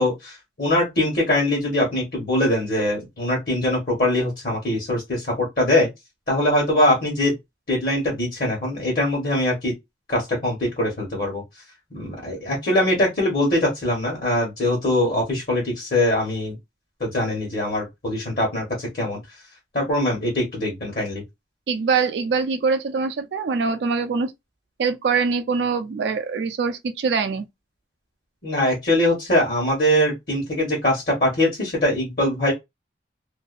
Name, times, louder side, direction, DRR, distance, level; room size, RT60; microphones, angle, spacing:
voice 1, 0.0-5.9 6.3-7.3 7.7-9.7 10.1-11.4 11.9-16.6 17.0-19.2 19.7-21.2 28.4-32.5, left 1 dB, 55° left, 1.1 m, -22 dB
voice 2, 21.7-24.3 24.8-27.5, right 5 dB, 75° right, 0.4 m, -23 dB
2.6 x 2.3 x 2.4 m
head